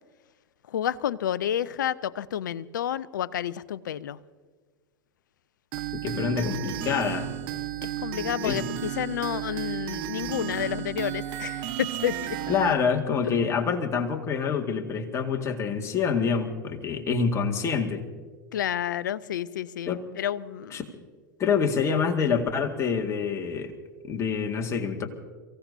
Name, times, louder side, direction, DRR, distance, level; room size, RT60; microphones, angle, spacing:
voice 1, 0.7-4.2 6.1-6.9 7.8-12.4 18.5-20.8, left 10 dB, 65° left, 19 dB, 0.6 m, -30 dB
sound 1, 5.7-12.7, right 13 dB, 45° right, 1.1 m, -33 dB
voice 2, 6.0-7.3 8.4-8.6 12.5-18.1 19.9-20.0 20.7-20.8 21.4-23.7 24.1-25.1, left 6 dB, 25° left, 3 dB, 2.0 m, -26 dB
29.5 x 16.5 x 2.7 m, 1.5 s
figure-of-eight pair, 90°, 11 cm